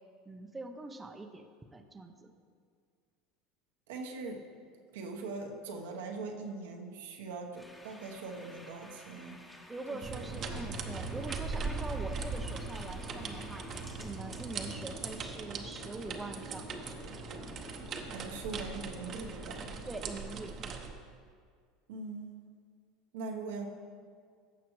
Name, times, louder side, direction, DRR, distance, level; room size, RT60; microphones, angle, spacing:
voice 1, 0.3-1.5 1.7-2.3 9.7-13.7 14.0-17.0 19.9-20.8, right 2 dB, 15° right, 6 dB, 0.7 m, -43 dB
voice 2, 3.9-4.4 4.9-9.4 9.9-10.4 18.1-19.6 21.9-22.3 23.1-23.7, right 3 dB, 80° right, 2 dB, 1.0 m, -41 dB
sound 1, 7.5-14.8, equal, 10° left, 1.1 m, -53 dB
sound 2, 10.0-20.9, right 4 dB, 45° right, 0.9 m, -40 dB
sound 3, 10.3-20.1, left 2 dB, 40° left, 1.3 m, -50 dB
15.0 x 6.0 x 3.1 m, 2.1 s
hypercardioid pair, 95°, 0 cm